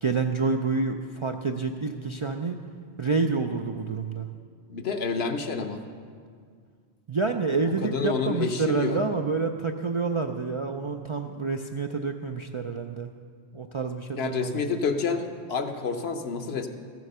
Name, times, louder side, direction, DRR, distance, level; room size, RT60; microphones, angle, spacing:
voice 1, 0.0-2.6 3.0-4.3 7.1-13.1 13.5-14.8, right 4 dB, 50° right, 4 dB, 0.3 m, -28 dB
voice 2, 4.7-5.8 7.8-9.0 14.2-16.7, left 5 dB, 70° left, 7 dB, 1.1 m, -28 dB
14.0 x 7.8 x 6.7 m, 2.1 s
omnidirectional pair, 1.1 m